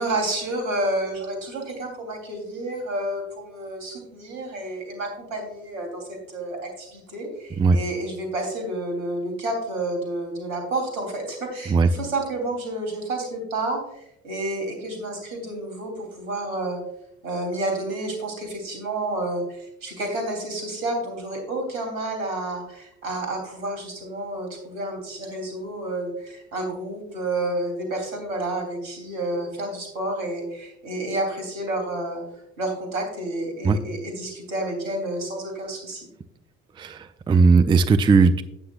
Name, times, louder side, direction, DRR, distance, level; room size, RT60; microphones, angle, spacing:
voice 1, 0.0-16.8 17.2-32.2 32.6-36.1, right 2 dB, 75° right, 3 dB, 3.4 m, -30 dB
voice 2, 36.8-38.4, right 4 dB, 10° right, 12 dB, 0.4 m, -17 dB
12.0 x 9.4 x 2.4 m, 0.77 s
figure-of-eight pair, 60°, 41 cm